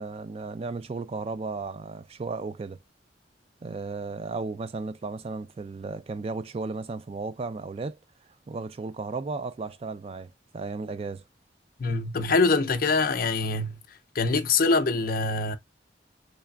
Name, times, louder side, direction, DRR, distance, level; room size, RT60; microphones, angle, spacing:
voice 1, 0.0-2.8 3.6-8.0 8.5-11.2, right 3 dB, 35° right, 0.3 m, -34 dB
voice 2, 11.8-13.8 14.1-15.6, left 3 dB, 55° left, 0.6 m, -24 dB
3.9 x 3.3 x 2.3 m
head